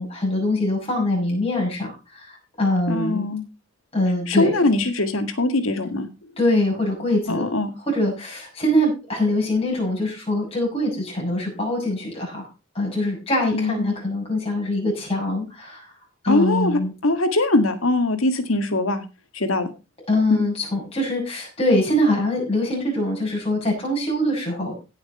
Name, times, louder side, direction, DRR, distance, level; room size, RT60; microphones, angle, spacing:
voice 1, 0.0-3.2 3.9-4.6 6.4-7.4 7.9-12.5 12.7-15.9 16.2-16.9 20.1-24.8, left 1 dB, 30° left, -3 dB, 6.9 m, -23 dB
voice 2, 2.9-3.4 4.3-6.1 7.3-7.7 13.5-13.9 16.3-19.0 19.3-19.7 20.3-20.4, left 2 dB, 85° left, 8 dB, 2.0 m, -22 dB
17.0 x 6.5 x 4.4 m, 0.29 s
head